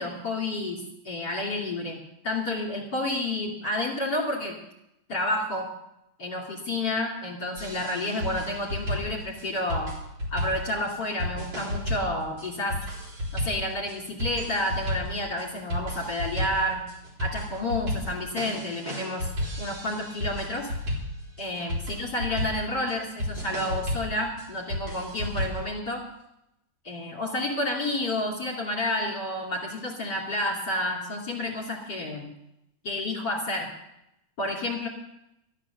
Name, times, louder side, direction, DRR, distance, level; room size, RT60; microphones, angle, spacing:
voice 1, 0.0-2.0 2.2-4.5 5.1-5.7 6.2-9.9 10.3-12.8 13.3-16.8 17.2-19.3 19.6-20.7 21.4-26.0 26.8-32.3 32.8-33.7 34.4-34.9, left 1 dB, 35° left, -2 dB, 3.1 m, -30 dB
sound 1, 7.6-25.7, equal, 55° right, 4.7 m, -33 dB
14.0 x 11.0 x 6.9 m, 0.84 s
omnidirectional pair, 3.3 m